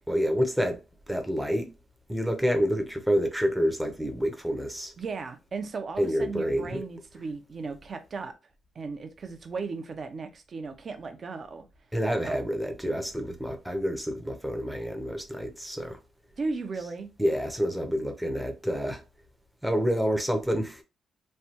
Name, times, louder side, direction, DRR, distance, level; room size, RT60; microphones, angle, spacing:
voice 1, 0.1-1.7 2.1-4.9 6.0-6.8 11.9-16.0 17.2-19.0 19.6-20.8, equal, 5° right, 0.6 m, -28 dB
voice 2, 5.0-8.3 8.7-11.7 12.3-12.4 16.4-17.1, right 4 dB, 45° right, 0.6 m, -36 dB
3.2 x 2.3 x 2.8 m
cardioid pair, 95°, 0 cm